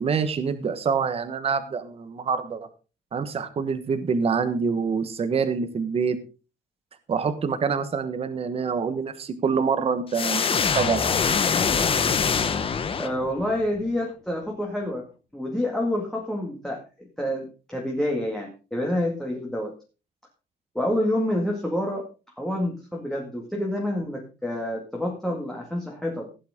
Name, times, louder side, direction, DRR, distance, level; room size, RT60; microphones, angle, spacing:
voice 1, 0.0-2.7 3.1-6.2 7.1-11.0, right 5 dB, 30° right, 10 dB, 1.3 m, -26 dB
sound 1, 10.1-13.5, left 6 dB, 30° left, 1.1 m, -24 dB
voice 2, 13.0-15.0 15.3-19.7 20.7-22.1 22.4-26.3, left 1 dB, ahead, -1 dB, 2.1 m, -28 dB
16.0 x 9.2 x 3.6 m, 0.32 s
cardioid pair, 170°, 19 cm